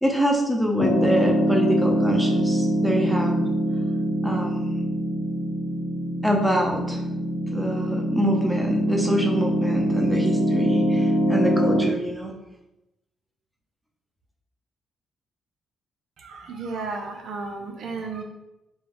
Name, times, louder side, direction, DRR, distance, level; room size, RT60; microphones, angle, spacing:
voice 1, 0.0-3.5 4.2-4.8 6.2-7.0 7.5-12.3, equal, 5° right, 0 dB, 0.8 m, -25 dB
Piano, 0.8-11.8, equal, 90° left, 1.3 m, -23 dB
voice 2, 16.2-18.2, right 4 dB, 70° right, 2 dB, 0.6 m, -33 dB
4.4 x 3.3 x 3.1 m, 0.95 s
cardioid pair, 90°, 0 cm